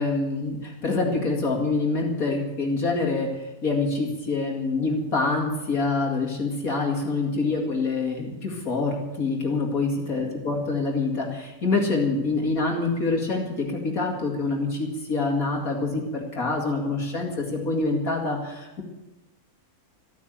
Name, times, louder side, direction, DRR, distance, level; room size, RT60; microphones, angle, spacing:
voice 1, 0.0-18.8, left 3 dB, 70° left, 0 dB, 2.7 m, -26 dB
14.0 x 9.2 x 9.1 m, 1.0 s
omnidirectional pair, 1.6 m